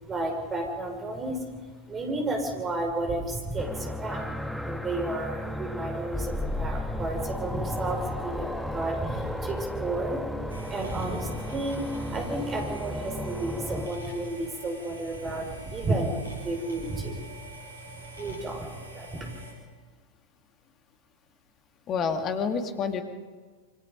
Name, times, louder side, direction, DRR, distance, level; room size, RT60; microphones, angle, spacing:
voice 1, 0.0-1.6 1.9-17.3 17.7-19.4, right 2 dB, 20° right, 2 dB, 5.9 m, -32 dB
sound 1, 3.6-13.9, left 1 dB, ahead, 1.7 m, -34 dB
sound 2, 10.5-19.5, right 1 dB, 75° right, 6.6 m, -46 dB
voice 2, 21.9-23.0, left 5 dB, 30° left, 6 dB, 2.4 m, -28 dB
28.0 x 25.0 x 5.4 m, 1.5 s
figure-of-eight pair, 90°, 0 cm